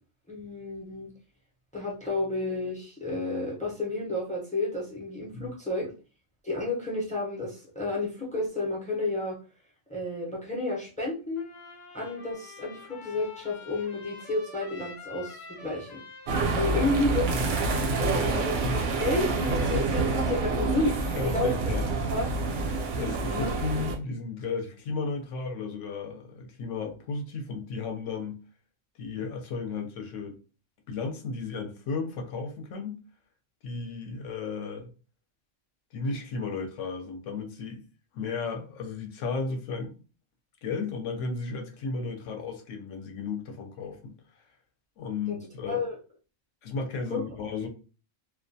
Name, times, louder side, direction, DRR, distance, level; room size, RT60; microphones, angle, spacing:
voice 1, 0.3-1.1 1.7-5.9 6.4-9.4 9.9-11.5 11.9-16.0 16.5-17.4 18.4-21.0 21.2-21.6 22.1-22.3 23.3-23.6 45.3-45.4 45.7-46.0 47.1-47.2, left 2 dB, 10° left, 0.3 m, -31 dB
Trumpet, 11.4-20.1, left 4 dB, 40° left, 0.8 m, -47 dB
sound 1, 16.3-24.0, right 3 dB, 65° right, 0.6 m, -27 dB
voice 2, 18.2-18.8 20.8-21.9 23.0-28.4 29.0-30.4 30.9-33.0 33.6-34.9 35.9-37.8 38.1-40.0 40.6-44.2 45.0-45.8 46.6-47.7, left 4 dB, 70° left, 0.9 m, -34 dB
2.3 x 2.2 x 2.6 m
omnidirectional pair, 1.4 m